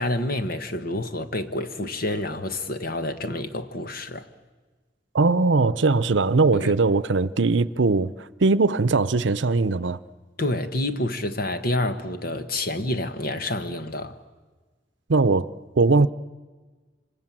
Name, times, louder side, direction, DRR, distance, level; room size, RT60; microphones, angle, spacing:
voice 1, 0.0-4.3 6.5-6.7 10.4-14.2, left 1 dB, 55° left, 1.5 m, -28 dB
voice 2, 5.1-10.0 15.1-15.5 15.8-16.1, right 3 dB, 80° right, 0.7 m, -20 dB
26.0 x 26.0 x 7.5 m
head